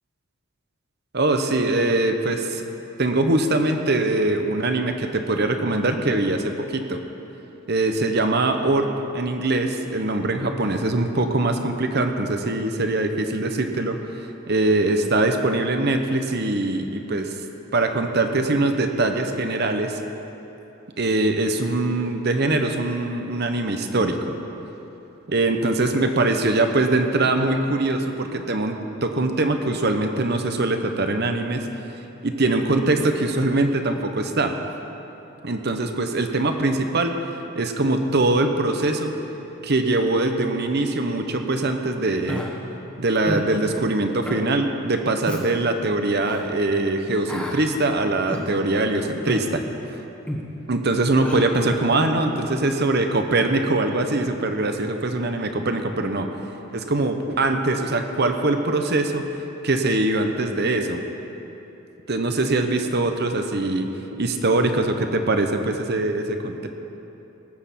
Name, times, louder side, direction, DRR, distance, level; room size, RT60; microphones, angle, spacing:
voice 1, 1.1-2.6 3.0-7.0 7.7-17.3 17.7-20.0 21.0-24.2 25.3-31.7 32.2-34.5 35.4-37.1 37.6-39.2 39.6-42.4 43.0-49.6 50.7-56.3 56.7-59.2 59.6-61.0 62.1-63.9 64.1-66.7, right 2 dB, 50° right, 6 dB, 0.9 m, -22 dB
Human voice, 42.3-42.5 43.3-43.5 44.2-44.4 45.2-45.4 46.2-46.4 47.3-47.6 48.3-48.5 49.3-49.5 50.3-50.5 51.2-51.4, equal, 5° left, 1.4 m, -30 dB
19.0 x 6.5 x 7.5 m, 3.0 s
head